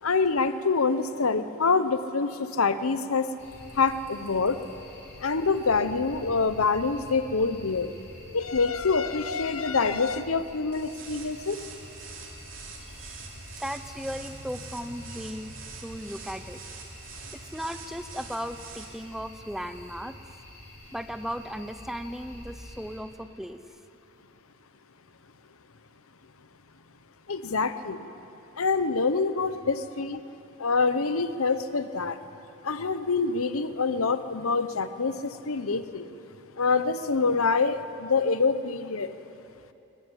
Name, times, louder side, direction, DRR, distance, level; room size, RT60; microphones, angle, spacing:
voice 1, 0.0-3.3 3.7-4.6 5.2-7.9 8.3-11.6 27.3-28.0 28.6-30.2 30.6-32.2 32.6-36.1 36.6-39.1, left 4 dB, 85° left, 12 dB, 1.0 m, -26 dB
sound 1, 3.4-23.0, left 1 dB, 35° left, 5.5 m, -47 dB
sound 2, 10.7-18.8, right 6 dB, 65° right, 3.1 m, -45 dB
voice 2, 13.6-16.6 17.3-20.2 20.9-23.6, equal, ahead, 10 dB, 0.6 m, -36 dB
22.0 x 14.5 x 9.9 m, 2.9 s
head